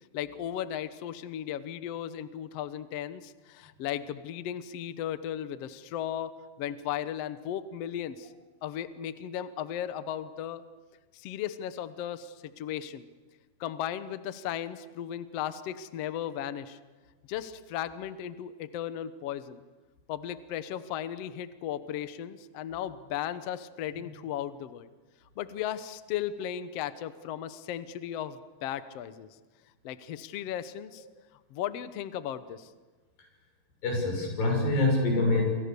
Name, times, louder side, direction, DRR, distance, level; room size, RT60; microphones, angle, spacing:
voice 1, 0.1-6.3 6.6-8.3 8.6-10.6 11.1-13.0 13.6-16.8 17.3-19.6 20.1-24.9 25.4-29.3 29.8-31.0 31.5-32.7, left 10 dB, 90° left, 12 dB, 1.3 m, -36 dB
voice 2, 33.8-35.4, left 2 dB, 65° left, 2 dB, 8.4 m, -25 dB
29.0 x 25.0 x 6.9 m, 1.3 s
omnidirectional pair, 4.5 m